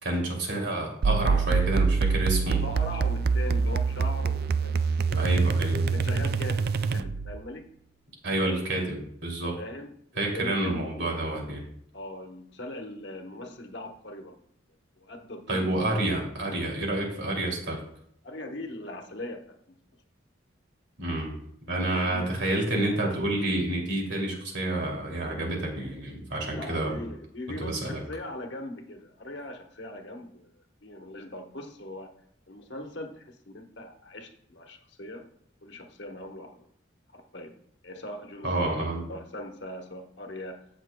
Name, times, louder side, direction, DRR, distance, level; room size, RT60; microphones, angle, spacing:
voice 1, 0.0-2.6 5.1-5.9 6.9-7.0 8.2-9.6 10.2-11.6 15.5-17.8 21.0-21.4 21.7-26.9 27.6-28.0 38.4-39.0, right 1 dB, 70° right, 0 dB, 2.6 m, -29 dB
sound 1, 1.0-7.4, right 5 dB, 50° right, 0.3 m, -25 dB
voice 2, 2.5-5.5 5.9-7.6 9.6-9.9 10.3-10.8 11.9-14.4 15.0-16.1 18.2-19.7 21.8-22.2 26.5-32.1 32.5-35.3 35.6-36.6 37.1-37.5 37.8-38.8 39.1-40.7, left 1 dB, 65° left, 3 dB, 1.1 m, -40 dB
16.0 x 6.1 x 2.2 m, 0.71 s
head